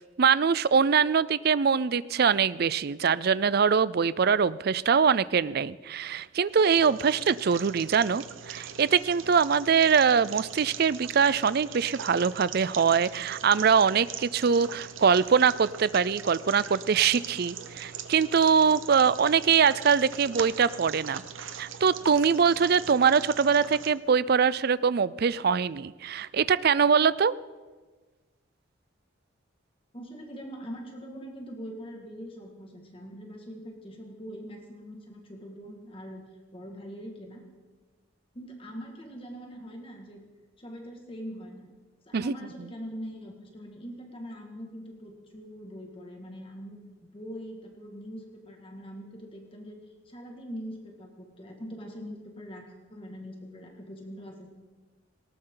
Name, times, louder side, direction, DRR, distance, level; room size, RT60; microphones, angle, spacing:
voice 1, 0.2-21.2 21.6-27.3 42.1-42.3, right 6 dB, 50° right, 18 dB, 0.4 m, -23 dB
sound 1, 6.5-23.9, right 7 dB, 80° right, 0.9 m, -41 dB
voice 2, 29.9-36.2 36.5-37.4 38.3-40.2 40.6-41.7 42.1-49.8 50.1-54.5, equal, 25° left, 2 dB, 2.1 m, -42 dB
19.0 x 18.0 x 3.9 m, 1.3 s
head